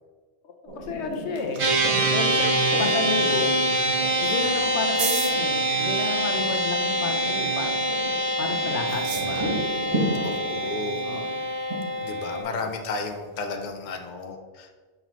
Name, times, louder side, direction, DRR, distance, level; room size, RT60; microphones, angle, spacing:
voice 1, 0.6-1.6 2.1-3.5 4.2-7.8 8.4-9.5 10.0-10.3 11.0-11.3 12.5-12.7, left 4 dB, 85° left, 4 dB, 1.0 m, -32 dB
sound 1, 0.7-13.7, right 1 dB, 30° right, 1.3 m, -35 dB
sound 2, 0.9-13.5, right 6 dB, 80° right, 1.0 m, -41 dB
sound 3, 1.6-12.4, right 1 dB, 55° right, 0.8 m, -25 dB
voice 2, 4.2-4.6 10.2-11.0 12.0-14.7, left 3 dB, 50° left, 3 dB, 0.7 m, -33 dB
5.7 x 5.4 x 3.0 m, 1.4 s
omnidirectional pair, 1.1 m